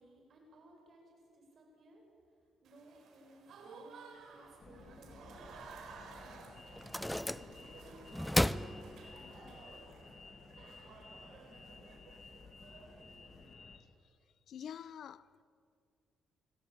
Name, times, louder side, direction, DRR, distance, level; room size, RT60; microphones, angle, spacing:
voice 1, 0.0-5.3 6.1-8.1 8.5-9.8, right 1 dB, 55° right, 7.9 m, -60 dB
Applause / Crowd, 2.6-13.5, right 4 dB, 70° right, 4.3 m, -55 dB
sound 1, 4.6-13.8, left 4 dB, 35° left, 2.5 m, -55 dB
sound 2, 6.0-6.1 6.7-7.8 8.1-9.5, equal, 5° left, 0.6 m, -34 dB
voice 2, 14.5-15.4, left 9 dB, 65° left, 0.8 m, -47 dB
25.5 x 16.5 x 8.8 m
cardioid pair, 90°, 0 cm